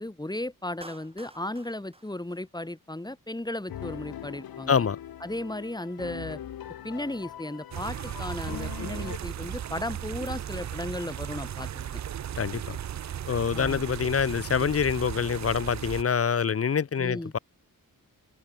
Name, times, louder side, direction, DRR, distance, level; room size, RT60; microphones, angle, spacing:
voice 1, 0.0-4.9 5.2-6.4 6.8-12.0 13.5-13.8 17.0-17.3, left 1 dB, 10° left, 3.3 m, -35 dB
Clapping, 0.8-3.1, right 2 dB, 15° right, 2.9 m, -50 dB
sound 1, 3.7-9.2, left 10 dB, 90° left, 0.7 m, -41 dB
sound 2, 7.7-16.0, right 10 dB, 55° right, 0.5 m, -36 dB
voice 2, 12.4-12.8 13.3-17.4, left 6 dB, 40° left, 0.7 m, -26 dB
wide cardioid pair, 125°, 35 cm